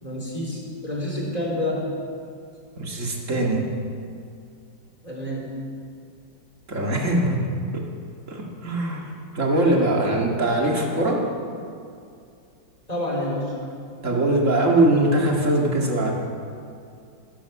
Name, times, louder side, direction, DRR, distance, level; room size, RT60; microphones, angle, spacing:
voice 1, 0.0-1.9 5.0-5.5 12.9-13.5, left 1 dB, 20° left, -3 dB, 3.6 m, -28 dB
voice 2, 2.8-3.6 6.7-7.9 8.3-9.0 9.3-11.3 14.0-16.1, right 1 dB, 40° right, -1 dB, 2.5 m, -22 dB
16.0 x 12.5 x 7.1 m, 2.4 s
omnidirectional pair, 2.0 m